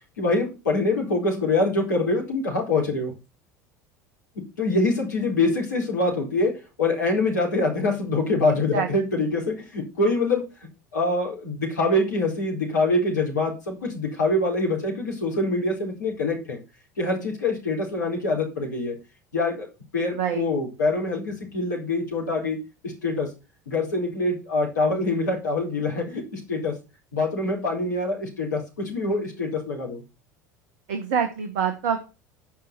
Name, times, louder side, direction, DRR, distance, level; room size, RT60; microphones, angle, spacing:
voice 1, 0.2-3.1 4.6-6.5 6.8-10.4 10.9-16.6 17.0-19.0 19.3-19.7 19.9-22.6 22.8-23.3 23.7-26.8 27.1-30.0, left 2 dB, 75° left, 0 dB, 4.2 m, -24 dB
voice 2, 20.1-20.5 30.9-32.1, right 7 dB, 60° right, 7 dB, 1.6 m, -26 dB
10.0 x 5.7 x 6.8 m, 0.30 s
figure-of-eight pair, 70°, 10 cm